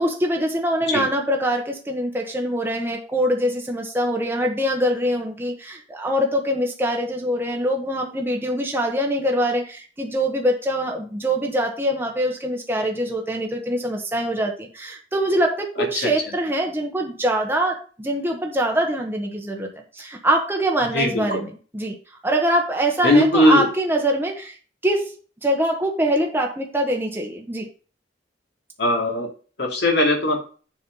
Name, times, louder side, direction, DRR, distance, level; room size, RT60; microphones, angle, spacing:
voice 1, 0.0-22.0 22.2-24.6 24.8-27.7, right 1 dB, 10° right, 1 dB, 1.1 m, -24 dB
voice 2, 20.9-21.4 23.0-23.7 28.8-29.3 29.6-30.4, left 1 dB, 65° left, 0 dB, 2.7 m, -19 dB
7.0 x 5.3 x 5.3 m, 0.39 s
head